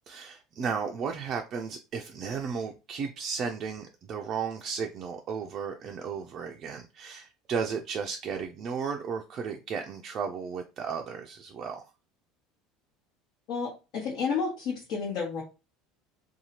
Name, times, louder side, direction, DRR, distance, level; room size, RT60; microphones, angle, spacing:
voice 1, 0.1-11.9, right 6 dB, 50° right, 0.4 m, -34 dB
voice 2, 13.5-15.4, left 5 dB, 65° left, 1.1 m, -31 dB
2.7 x 2.3 x 2.9 m
hypercardioid pair, 85°, 0 cm